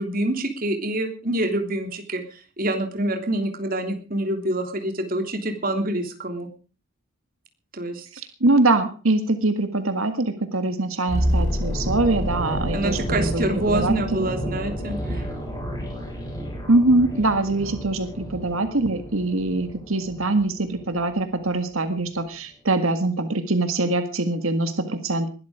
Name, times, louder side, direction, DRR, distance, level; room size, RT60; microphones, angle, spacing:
voice 1, 0.0-6.5 7.7-8.1 12.7-15.2, right 1 dB, 45° right, 5 dB, 3.2 m, -26 dB
voice 2, 8.4-14.3 16.7-25.3, right 2 dB, 85° right, 8 dB, 1.8 m, -23 dB
sound 1, 11.1-21.1 21.3-21.6, equal, 15° left, 7.2 m, -29 dB
21.0 x 12.5 x 5.0 m, 0.37 s
head